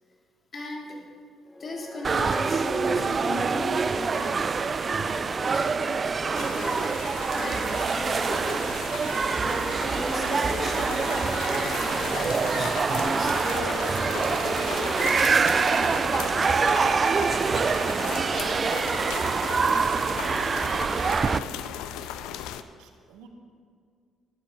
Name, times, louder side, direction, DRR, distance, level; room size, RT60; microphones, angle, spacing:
voice 1, 0.5-1.0 1.6-4.6 4.9-6.9 7.3-8.6 9.4-15.1 15.6-17.1 17.9-18.0 19.6-19.7, left 1 dB, 45° left, -1 dB, 3.1 m, -37 dB
sound 1, 1.4-17.7, left 1 dB, 20° left, 1.4 m, -44 dB
sound 2, 2.0-21.4, right 5 dB, 40° right, 0.4 m, -25 dB
sound 3, 6.3-22.6, left 10 dB, 75° left, 0.5 m, -37 dB
voice 2, 21.1-23.3, right 5 dB, 80° right, 4 dB, 1.4 m, -52 dB
15.0 x 11.5 x 3.9 m, 2.1 s
hypercardioid pair, 50°, 0 cm